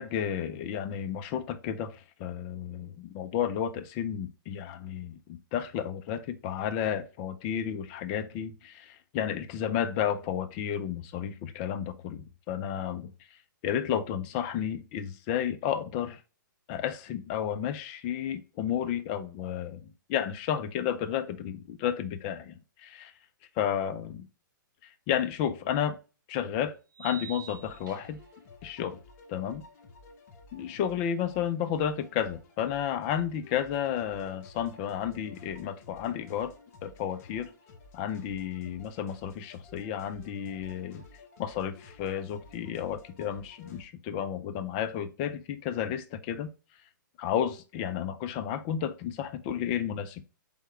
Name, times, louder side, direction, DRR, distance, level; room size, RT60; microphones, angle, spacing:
voice 1, 0.0-5.2 5.5-13.1 13.6-16.2 16.7-23.1 23.6-24.3 24.8-26.0 26.3-28.2 28.6-29.0 29.3-29.6 30.5-36.5 36.8-37.5 37.9-41.0 41.4-46.5 47.2-50.3, left 9 dB, 25° left, 0.4 m, -32 dB
sound 1, 25.3-25.4 26.9-28.4, right 8 dB, 70° right, 0.5 m, -45 dB
sound 2, 27.5-43.8, left 3 dB, 45° left, 1.0 m, -54 dB
4.6 x 3.5 x 3.1 m
hypercardioid pair, 150°, 11 cm